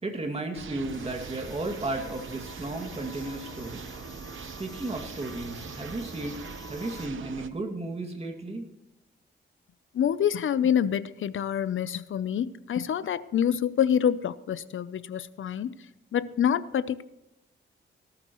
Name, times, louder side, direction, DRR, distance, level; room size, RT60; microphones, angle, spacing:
voice 1, 0.0-3.8 4.4-6.4 6.7-8.7, right 2 dB, 30° right, 3 dB, 2.2 m, -34 dB
sound 1, 0.5-7.5, right 6 dB, 75° right, 0.9 m, -42 dB
sound 2, 0.8-7.1, left 3 dB, 20° left, 1.0 m, -47 dB
voice 2, 9.9-15.7 16.1-17.0, left 9 dB, 80° left, 16 dB, 0.6 m, -26 dB
18.0 x 12.5 x 3.1 m, 0.92 s
wide cardioid pair, 115°, 20 cm